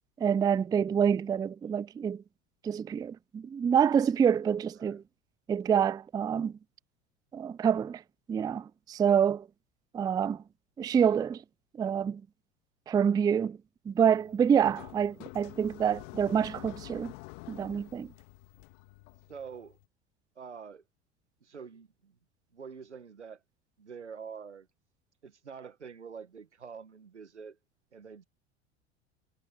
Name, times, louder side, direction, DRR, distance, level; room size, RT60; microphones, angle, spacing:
voice 1, 0.2-2.2 2.6-5.0 5.5-6.5 7.3-8.0 8.3-9.5 9.9-10.4 10.8-11.4 11.8-12.2 12.9-13.6 13.9-17.1 17.5-18.1, right 8 dB, 10° right, 0.4 m, -27 dB
sound 1, 14.0-19.9, left 27 dB, 60° left, 2.2 m, -48 dB
voice 2, 19.3-19.8 20.4-20.8 21.4-22.2 22.5-23.4 23.8-24.7 25.2-27.6 27.9-28.2, right 6 dB, 90° right, 2.0 m, -46 dB
figure-of-eight pair, 75°, 34 cm